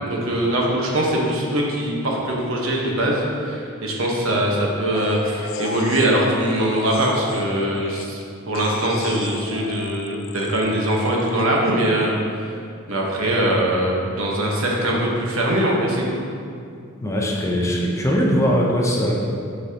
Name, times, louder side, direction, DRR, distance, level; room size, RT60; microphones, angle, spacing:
voice 1, 0.0-8.2 8.5-12.5 12.9-16.2, right 1 dB, 75° right, -2 dB, 1.2 m, -22 dB
sound 1, 4.9-8.2 8.5-11.4, left 4 dB, 65° left, 0.4 m, -35 dB
voice 2, 17.0-19.1, equal, 15° left, -2 dB, 0.7 m, -20 dB
8.2 x 5.6 x 2.9 m, 2.3 s
head